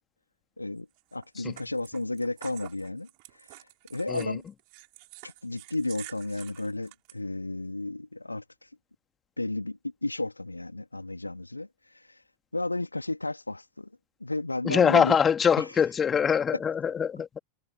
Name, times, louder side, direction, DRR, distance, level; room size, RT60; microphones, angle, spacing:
sound 1, 1.0-7.1, right 31 dB, 45° right, 5.2 m, -48 dB
voice 1, 1.1-4.4 5.2-8.7 9.4-12.2 12.5-13.9 14.2-15.2 15.6-15.8, left 2 dB, 85° left, 1.5 m, -33 dB
voice 2, 14.6-17.4, left 7 dB, 20° left, 2.4 m, -24 dB
open air
figure-of-eight pair, 90°, 0 cm